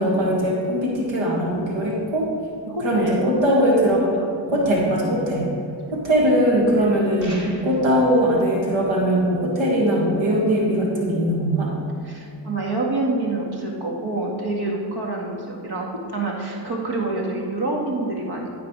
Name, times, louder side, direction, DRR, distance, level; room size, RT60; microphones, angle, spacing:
voice 1, 0.0-2.3 2.8-4.1 4.5-5.5 5.9-11.7, equal, 85° right, -2 dB, 2.0 m, -20 dB
voice 2, 2.7-3.2 4.0-4.7 6.8-6.9 7.5-7.6 12.1-15.9 16.1-18.5, right 2 dB, 60° right, -1 dB, 2.0 m, -27 dB
sound 1, 7.2-7.9, right 1 dB, 40° right, 2.5 m, -39 dB
13.0 x 5.1 x 4.8 m, 2.5 s
cardioid pair, 75°, 44 cm